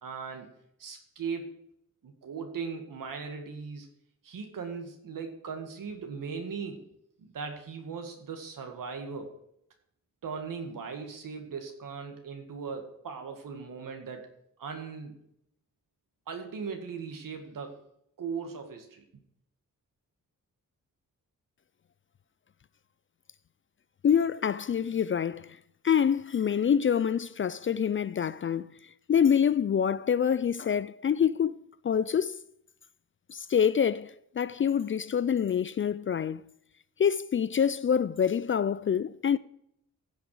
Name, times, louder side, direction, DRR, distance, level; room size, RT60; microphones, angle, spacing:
voice 1, 0.0-0.5 0.8-1.5 2.0-3.9 4.2-6.9 7.2-9.3 10.2-14.2 14.6-15.2 16.3-17.8 18.2-19.0, right 5 dB, 75° right, 2.1 m, -38 dB
voice 2, 24.0-25.5 25.8-28.7 29.1-31.6 31.8-32.4 33.3-36.4 37.0-39.4, left 8 dB, 40° left, 0.4 m, -26 dB
16.0 x 6.1 x 4.9 m
cardioid pair, 105°, 33 cm